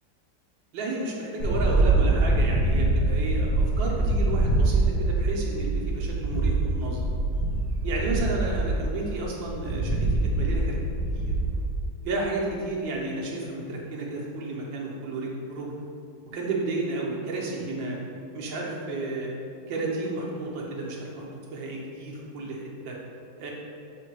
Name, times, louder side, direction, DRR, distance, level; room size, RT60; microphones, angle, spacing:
voice 1, 0.7-7.1 7.8-10.8 11.1-11.3 12.0-15.7 16.3-18.0 18.3-19.3 19.7-21.2 21.5-23.0 23.4-23.5, right 2 dB, 70° right, -3 dB, 1.6 m, -32 dB
sound 1, 1.4-11.6, right 2 dB, 60° left, 1.6 m, -24 dB
6.7 x 3.3 x 4.6 m, 2.7 s
omnidirectional pair, 2.2 m